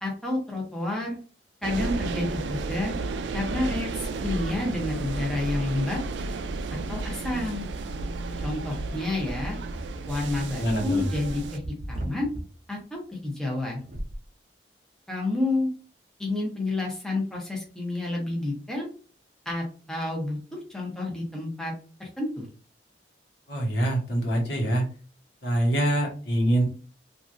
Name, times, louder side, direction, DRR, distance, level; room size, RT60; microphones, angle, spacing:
voice 1, 0.0-1.2 1.6-2.9 3.3-6.0 6.7-7.7 8.4-9.6 10.1-11.6 11.9-12.3 12.7-13.8 15.1-15.7 16.2-18.9 19.4-20.4 20.7-21.7 22.0-22.5, left 2 dB, 5° left, -2 dB, 0.8 m, -29 dB
sound 1, 1.6-11.6, right 3 dB, 75° right, 0.3 m, -33 dB
sound 2, 9.6-12.4 13.8-14.2, right 1 dB, 45° right, 0.8 m, -38 dB
voice 2, 10.6-11.0 23.5-24.8 25.4-26.6, right 1 dB, 70° left, 0 dB, 1.1 m, -24 dB
3.0 x 2.5 x 2.5 m, 0.38 s
head